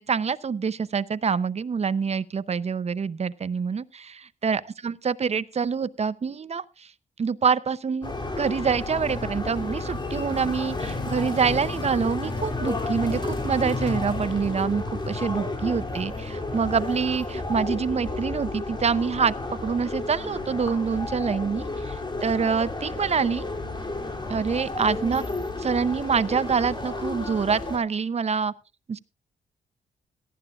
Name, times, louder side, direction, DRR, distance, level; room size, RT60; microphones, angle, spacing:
voice 1, 0.0-6.6 7.2-19.3 19.6-23.4 24.3-25.2 25.6-28.5 28.9-29.0, right 6 dB, 40° right, 17 dB, 0.7 m, -26 dB
sound 1, 8.0-27.8, left 2 dB, 25° left, 2.9 m, -31 dB
17.5 x 13.0 x 2.4 m, 0.29 s
cardioid pair, 75°, 17 cm